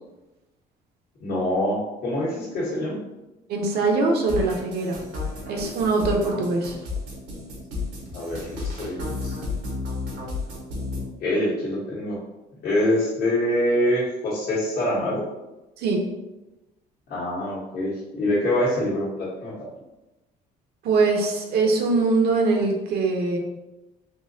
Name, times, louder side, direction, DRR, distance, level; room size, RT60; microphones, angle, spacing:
voice 1, 1.2-3.0 8.1-9.5 11.0-12.2 12.6-15.3 17.1-19.7, left 1 dB, 65° left, -7 dB, 1.2 m, -25 dB
voice 2, 3.5-5.0 5.5-6.8 15.8-16.0 20.8-23.4, right 3 dB, 70° right, 2 dB, 0.7 m, -22 dB
sound 1, 4.3-11.0, left 3 dB, 90° right, 1.2 m, -32 dB
3.8 x 2.9 x 2.7 m, 1.0 s
cardioid pair, 110°, 17 cm